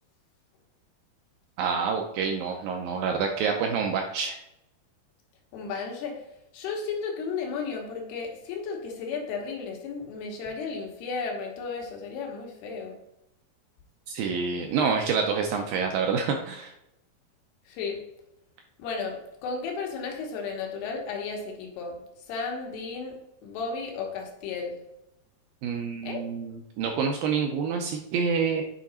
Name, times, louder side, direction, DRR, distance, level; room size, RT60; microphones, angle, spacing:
voice 1, 1.6-4.4 14.1-16.7 25.6-28.6, right 5 dB, 80° right, 2.0 m, -27 dB
voice 2, 5.5-6.3 6.5-13.0 17.7-18.0 18.8-22.0 22.3-24.9 26.0-26.3, left 5 dB, 85° left, 3.2 m, -34 dB
8.3 x 3.7 x 4.3 m
omnidirectional pair, 4.6 m